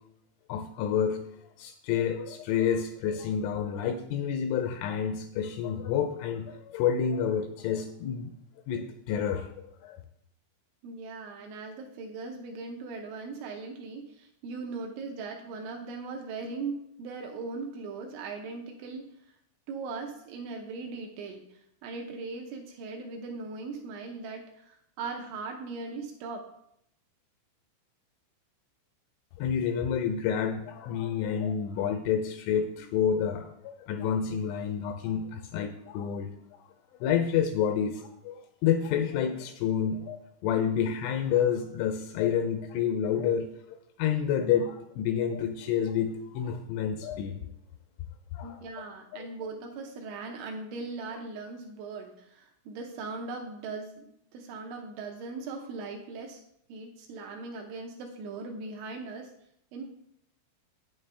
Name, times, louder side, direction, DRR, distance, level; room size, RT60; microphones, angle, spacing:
voice 1, 0.5-1.2 1.6-8.3 8.7-10.0 29.4-36.3 37.0-47.4 48.3-48.6 49.1-49.3, left 8 dB, 85° left, 6 dB, 2.8 m, -29 dB
voice 2, 10.8-19.1 19.7-26.5 48.4-56.4 56.7-59.3 59.7-59.9, right 4 dB, 80° right, 2 dB, 2.8 m, -39 dB
8.9 x 8.8 x 3.3 m, 0.75 s
omnidirectional pair, 5.9 m